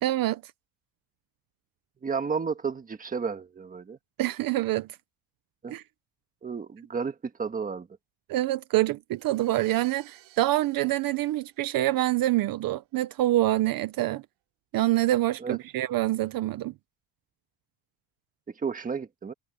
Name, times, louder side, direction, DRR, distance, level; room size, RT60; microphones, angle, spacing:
voice 1, 0.0-0.4 4.2-4.9 5.7-5.8 8.3-14.2 14.7-16.7, right 15 dB, 45° right, 0.8 m, -26 dB
voice 2, 2.0-4.0 5.6-5.8 6.4-7.9 15.4-15.6 18.5-19.3, right 5 dB, 15° right, 1.5 m, -32 dB
Crash cymbal, 9.1-12.1, right 18 dB, 75° right, 6.8 m, -54 dB
cardioid pair, 165°, 47 cm